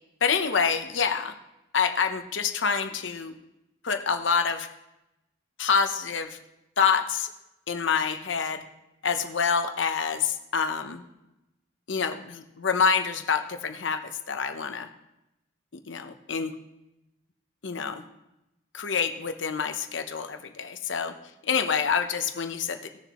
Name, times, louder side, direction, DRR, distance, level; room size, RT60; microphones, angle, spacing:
voice 1, 0.2-1.3 1.7-3.3 3.8-4.7 5.6-6.4 6.8-7.3 7.7-8.6 9.0-11.0 11.9-14.9 15.9-16.5 17.6-18.1 18.7-21.1 21.4-22.8, left 6 dB, 80° left, 7 dB, 0.9 m, -27 dB
18.5 x 6.9 x 3.1 m, 0.92 s
head